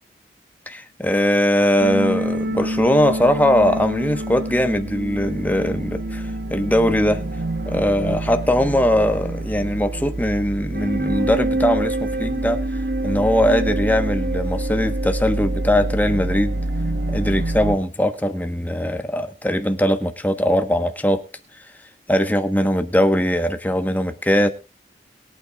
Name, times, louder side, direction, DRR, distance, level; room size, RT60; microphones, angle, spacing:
voice 1, 0.7-6.2 6.5-7.2 7.6-12.6 13.0-16.6 17.1-21.2 22.1-24.5, equal, 10° left, 1.2 m, -20 dB
sound 1, 1.8-17.8, right 1 dB, 60° right, 1.1 m, -26 dB
22.5 x 8.7 x 2.4 m
head